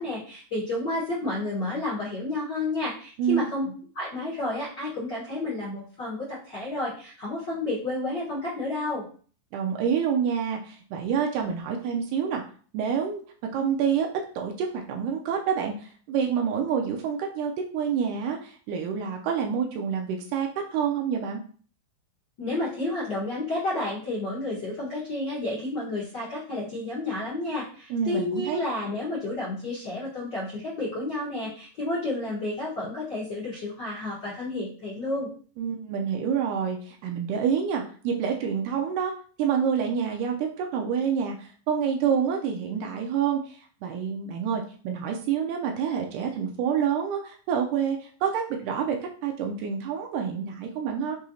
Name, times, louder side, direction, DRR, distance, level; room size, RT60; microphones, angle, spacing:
voice 1, 0.0-3.6 3.9-9.0 22.4-35.3, left 2 dB, 75° left, -8 dB, 0.9 m, -31 dB
voice 2, 9.5-12.4 12.7-13.2 13.5-14.1 14.4-21.4 27.9-28.6 35.6-39.1 39.4-49.0 49.2-51.2, right 7 dB, 90° right, 2 dB, 1.8 m, -27 dB
6.2 x 2.8 x 2.7 m, 0.43 s
omnidirectional pair, 4.2 m